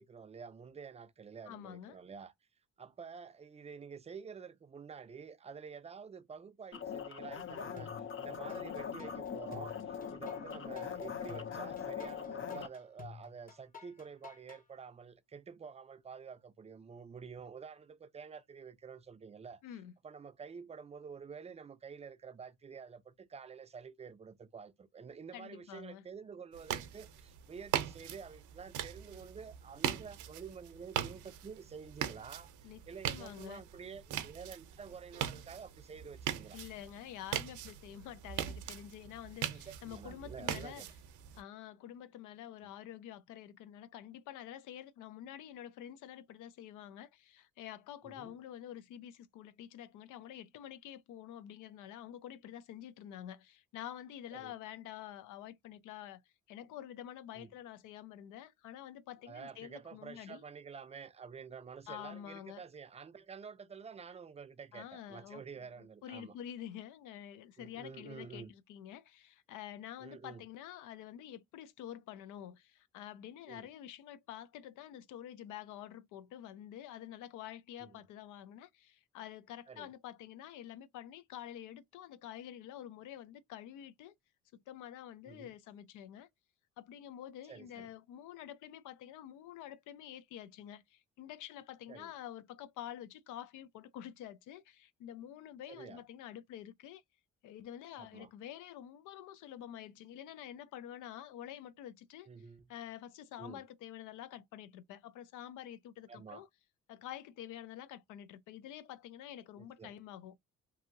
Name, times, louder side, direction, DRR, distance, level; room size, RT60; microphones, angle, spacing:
voice 1, 0.0-2.3 2.8-19.6 20.0-36.6 39.5-40.9 48.0-48.4 54.3-54.5 57.4-57.5 59.2-66.3 67.6-68.5 70.0-70.4 73.5-73.7 77.8-78.0 79.7-79.9 85.2-85.5 87.5-87.9 91.9-92.1 95.7-96.0 98.0-98.3 102.2-102.7 103.4-103.6 106.1-106.4 109.6-109.9, right 6 dB, 20° right, 0.4 m, -49 dB
voice 2, 1.5-2.0 19.6-19.9 25.3-26.0 32.6-33.6 36.5-40.8 41.3-56.2 56.5-60.4 61.9-62.6 64.7-84.1 84.5-86.3 86.8-97.0 97.4-102.3 102.7-106.5 106.9-110.4, left 11 dB, 90° left, 0.5 m, -48 dB
sound 1, 6.7-12.7, left 7 dB, 45° left, 0.5 m, -41 dB
sound 2, 7.8-8.6 9.0-14.6, left 6 dB, 30° left, 1.0 m, -51 dB
sound 3, 26.5-41.4, right 10 dB, 80° right, 0.6 m, -41 dB
2.7 x 2.6 x 2.5 m
cardioid pair, 90°, 30 cm